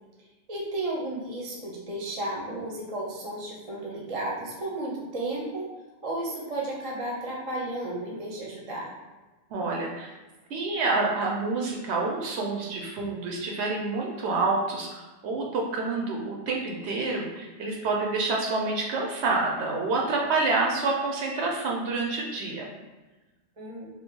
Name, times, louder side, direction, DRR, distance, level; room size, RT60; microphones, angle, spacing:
voice 1, 0.5-5.7 6.0-8.9 23.6-23.9, right 1 dB, 35° right, -2 dB, 0.6 m, -33 dB
voice 2, 9.5-10.1 10.5-22.7, right 3 dB, 75° right, -1 dB, 0.8 m, -28 dB
2.8 x 2.3 x 3.6 m, 1.2 s
omnidirectional pair, 1.2 m